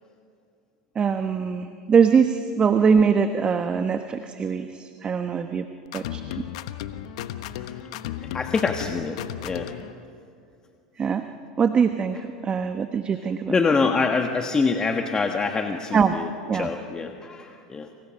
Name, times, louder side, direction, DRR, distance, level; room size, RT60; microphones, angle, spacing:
voice 1, 0.9-5.7 5.9-6.4 11.0-11.3 11.6-13.5 15.9-16.2 16.5-16.7, right 6 dB, 30° right, 8 dB, 1.2 m, -22 dB
sound 1, 5.9-9.9, left 12 dB, 70° left, 1.2 m, -35 dB
voice 2, 8.2-9.7 13.5-17.9, left 4 dB, 20° left, 4 dB, 1.6 m, -25 dB
30.0 x 28.0 x 5.4 m, 2.4 s
hypercardioid pair, 95°, 4 cm